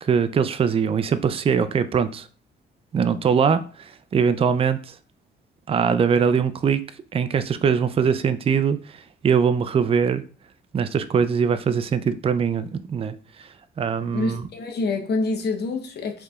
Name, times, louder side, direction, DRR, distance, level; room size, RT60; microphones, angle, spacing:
voice 1, 0.0-2.3 2.9-4.9 5.7-6.8 7.1-10.2 10.7-13.5 13.8-14.4, right 6 dB, 30° right, 0.4 m, -22 dB
voice 2, 14.1-16.2, left 3 dB, 55° left, 0.9 m, -26 dB
4.6 x 3.2 x 2.4 m
cardioid pair, 90°, 20 cm